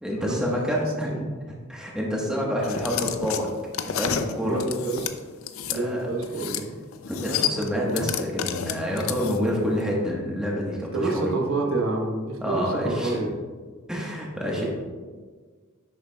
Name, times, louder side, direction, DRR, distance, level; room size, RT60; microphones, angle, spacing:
voice 1, 0.0-3.5 4.0-4.6 5.7-6.1 7.1-11.2 12.4-13.3 13.9-14.7, equal, 5° right, -3 dB, 1.2 m, -28 dB
sound 1, 2.6-5.8 6.2-6.7 6.9-9.6, left 8 dB, 65° left, 0.5 m, -30 dB
voice 2, 4.4-5.1 5.7-6.8 10.9-13.3 14.5-14.7, right 2 dB, 70° right, 1 dB, 1.1 m, -28 dB
10.5 x 6.7 x 2.3 m, 1.5 s
head